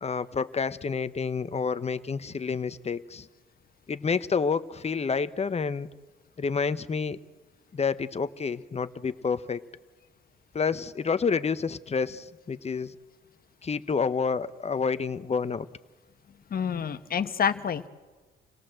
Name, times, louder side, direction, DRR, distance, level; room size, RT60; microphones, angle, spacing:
voice 1, 0.0-3.3 3.9-5.9 6.4-7.2 7.7-9.6 10.5-12.9 13.6-15.7, left 5 dB, 30° left, 13 dB, 1.0 m, -29 dB
voice 2, 16.5-17.9, left 7 dB, 50° left, 10 dB, 1.4 m, -28 dB
28.0 x 17.5 x 7.7 m, 1.3 s
cardioid pair, 90°, 20 cm